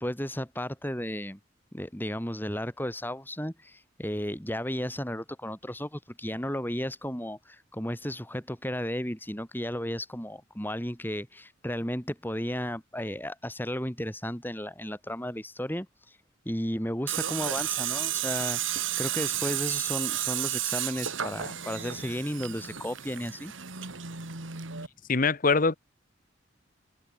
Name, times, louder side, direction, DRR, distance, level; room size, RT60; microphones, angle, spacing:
voice 1, 0.0-1.4 1.7-15.9 16.4-23.5, equal, 10° left, 6.2 m, -34 dB
Tools, 17.1-24.9, right 11 dB, 80° right, 2.7 m, -32 dB
voice 2, 25.1-25.8, left 4 dB, 45° left, 0.9 m, -23 dB
head